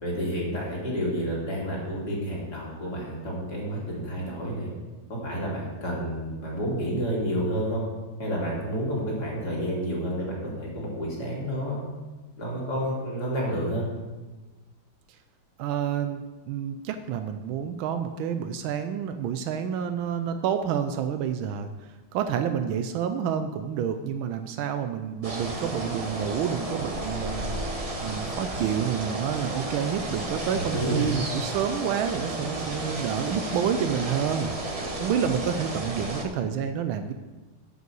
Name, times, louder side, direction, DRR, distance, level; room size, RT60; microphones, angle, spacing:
voice 1, 0.0-4.7 5.1-7.8 8.2-11.8 12.4-13.9 30.5-31.2, equal, 55° left, -4 dB, 3.1 m, -30 dB
voice 2, 15.6-21.7 22.1-27.5 28.0-37.1, right 8 dB, 85° right, 8 dB, 1.4 m, -29 dB
sound 1, 25.2-36.2, right 2 dB, 25° right, 0.8 m, -33 dB
9.2 x 5.4 x 7.7 m, 1.2 s
omnidirectional pair, 2.2 m